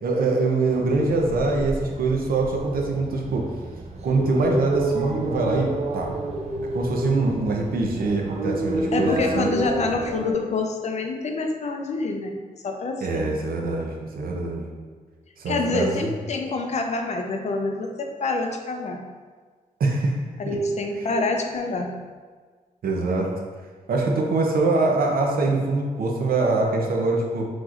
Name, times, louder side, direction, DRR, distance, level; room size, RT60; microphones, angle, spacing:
voice 1, 0.0-3.5 4.0-6.1 6.7-9.5 13.0-14.6 15.4-16.1 19.8-20.2 20.5-20.6 21.0-21.2 22.8-23.3 23.9-27.4, right 3 dB, 85° right, 0 dB, 0.7 m, -24 dB
sound 1, 0.7-10.3, right 1 dB, 50° right, 0.4 m, -29 dB
voice 2, 8.9-12.4 12.6-13.4 15.5-19.0 20.4-21.9, left 3 dB, 50° left, 4 dB, 0.5 m, -27 dB
6.1 x 3.0 x 2.5 m, 1.5 s
wide cardioid pair, 170°, 15 cm